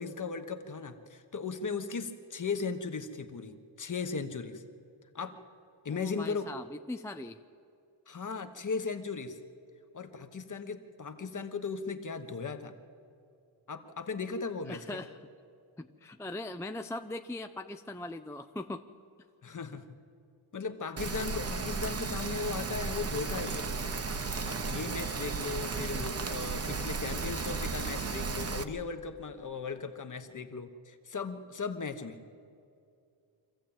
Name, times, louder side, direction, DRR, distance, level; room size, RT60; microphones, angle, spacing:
voice 1, 0.0-4.6 5.1-5.4 5.8-6.5 8.1-9.4 9.9-12.7 13.7-15.0 19.4-20.0 20.5-23.7 24.5-32.2, left 5 dB, 40° left, 8 dB, 1.2 m, -37 dB
voice 2, 5.9-7.4 14.7-15.2 15.8-18.8 25.8-26.0, left 2 dB, 5° left, 7 dB, 0.4 m, -40 dB
Rain, 21.0-28.6, right 4 dB, 30° right, 1.0 m, -34 dB
24.5 x 15.0 x 8.9 m, 2.5 s
wide cardioid pair, 145°, 48 cm